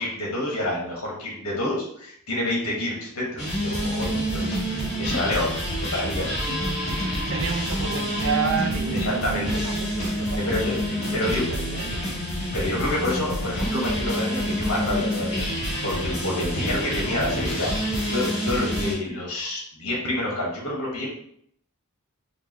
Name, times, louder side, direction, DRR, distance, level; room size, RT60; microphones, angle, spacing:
voice 1, 0.0-6.5 8.9-9.6 10.5-10.8 11.1-11.4 12.5-15.4 15.8-21.1, left 1 dB, 70° left, -3 dB, 1.7 m, -28 dB
sound 1, 3.4-18.9, equal, 30° left, 1.6 m, -27 dB
voice 2, 7.3-12.2, right 5 dB, 65° right, 4 dB, 0.6 m, -31 dB
5.1 x 2.6 x 3.0 m, 0.66 s
head